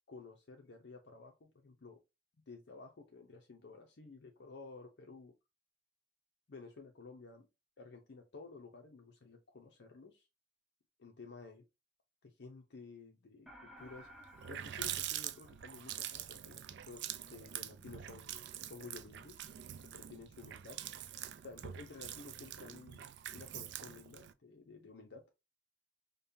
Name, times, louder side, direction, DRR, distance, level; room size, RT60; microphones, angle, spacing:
voice 1, 0.1-2.0 2.5-5.3 6.5-7.5 7.8-10.3 11.0-11.6 12.2-14.1 14.5-19.5 19.8-20.8 21.4-25.2, left 4 dB, 60° left, 0.6 m, -53 dB
sound 1, 13.5-16.1, equal, ahead, 0.6 m, -57 dB
Water tap faucet, 13.9-14.0 14.2-24.3, right 11 dB, 65° right, 0.3 m, -45 dB
5.2 x 2.2 x 2.6 m
head